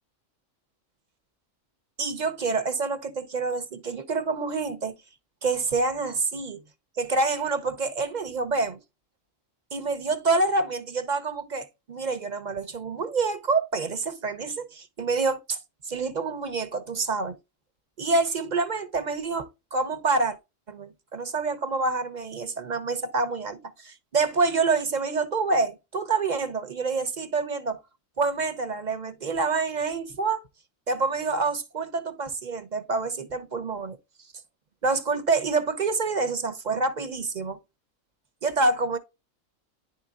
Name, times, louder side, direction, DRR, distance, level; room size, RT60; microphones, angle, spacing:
voice 1, 2.0-5.0 5.4-6.6 7.0-8.8 9.7-15.6 15.9-17.4 18.0-20.4 20.7-27.8 28.2-30.4 30.9-34.0 34.8-37.6 38.4-39.0, right 3 dB, 40° right, 0.7 m, -27 dB
10.5 x 4.3 x 2.4 m
omnidirectional pair, 1.3 m